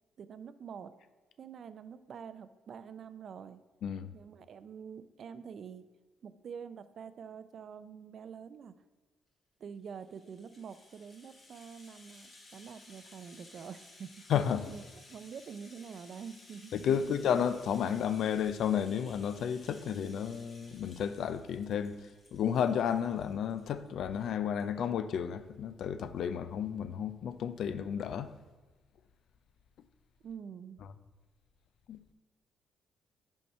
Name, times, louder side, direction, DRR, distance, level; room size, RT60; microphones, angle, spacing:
voice 1, 0.2-0.9 1.4-3.6 4.1-5.9 6.2-8.8 9.6-14.8 15.1-17.1 30.2-30.8, right 7 dB, 60° right, 0.4 m, -46 dB
Rattle (instrument), 9.8-23.9 24.2-24.3 24.6-24.7, left 2 dB, 40° left, 1.5 m, -57 dB
voice 2, 14.3-14.7 16.7-21.9 22.3-28.3 31.9-32.1, left 8 dB, 70° left, 0.4 m, -32 dB
5.6 x 4.5 x 5.5 m
cardioid pair, 90°, 0 cm